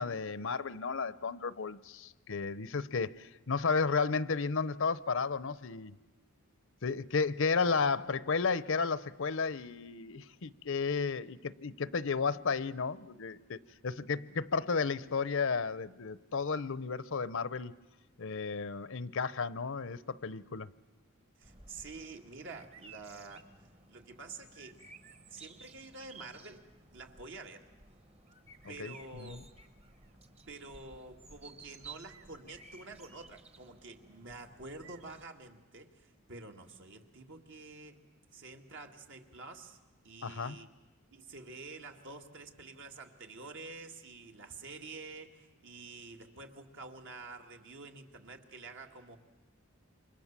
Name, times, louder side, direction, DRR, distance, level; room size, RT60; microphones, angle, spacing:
voice 1, 0.0-5.9 6.8-17.7 18.2-20.7 28.6-29.4 40.2-40.6, left 5 dB, 65° left, 0.8 m, -33 dB
sound 1, 21.4-35.2, right 4 dB, 30° right, 1.4 m, -55 dB
voice 2, 21.4-23.5 23.9-24.8 25.3-27.7 28.7-29.4 30.5-38.0 38.3-39.8 40.0-40.7 41.1-49.2, right 3 dB, 60° right, 2.2 m, -48 dB
28.5 x 25.5 x 7.4 m
head